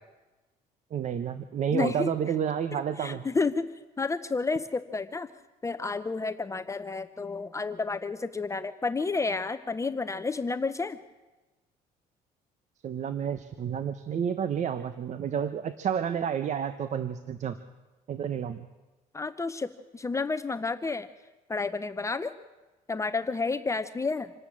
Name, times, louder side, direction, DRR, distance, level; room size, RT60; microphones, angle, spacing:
voice 1, 0.9-3.2 12.8-17.6 18.1-18.7, right 8 dB, 50° right, 11 dB, 1.1 m, -30 dB
voice 2, 1.7-2.1 2.7-3.7 4.0-5.3 5.6-11.0 19.1-19.7 19.9-21.1 21.5-22.3 22.9-24.3, left 4 dB, 20° left, 10 dB, 0.8 m, -30 dB
26.5 x 12.5 x 8.8 m, 1.1 s
cardioid pair, 110°, 16 cm